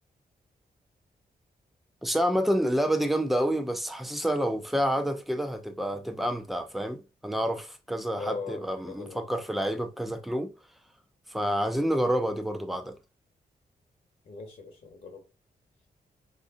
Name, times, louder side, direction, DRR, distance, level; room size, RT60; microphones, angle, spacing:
voice 1, 2.0-10.5 11.3-13.0, equal, ahead, 0.4 m, -28 dB
voice 2, 8.1-9.3 14.2-15.3, left 3 dB, 55° left, 1.0 m, -40 dB
4.6 x 2.6 x 3.6 m
wide cardioid pair, 165°, 16 cm